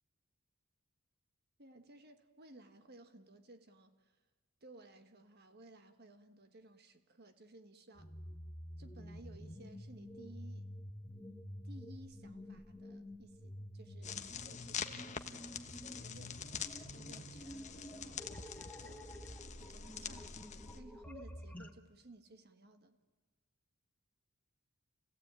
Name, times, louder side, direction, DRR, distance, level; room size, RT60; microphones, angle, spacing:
voice 1, 1.6-4.2 4.6-8.2 8.8-10.7 11.6-18.2 18.8-19.1 19.6-20.5 20.7-23.0, right 2 dB, 45° right, 1.5 m, -58 dB
sound 1, 8.0-21.7, equal, 5° left, 1.4 m, -50 dB
sound 2, 14.0-20.8, left 7 dB, 35° left, 1.2 m, -45 dB
30.0 x 17.0 x 9.0 m
head